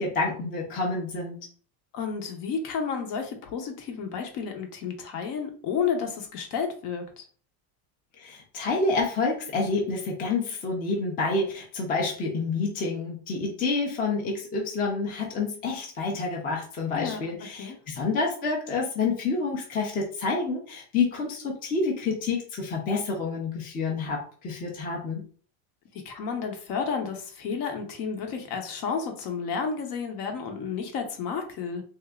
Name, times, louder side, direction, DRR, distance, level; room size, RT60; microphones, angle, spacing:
voice 1, 0.0-1.4 8.2-25.2, left 3 dB, 20° left, -1 dB, 0.7 m, -28 dB
voice 2, 1.9-7.2 16.9-17.2 17.6-17.8 25.9-31.8, left 6 dB, 50° left, 4 dB, 1.0 m, -31 dB
3.4 x 2.7 x 3.5 m, 0.44 s
cardioid pair, 160°, 44 cm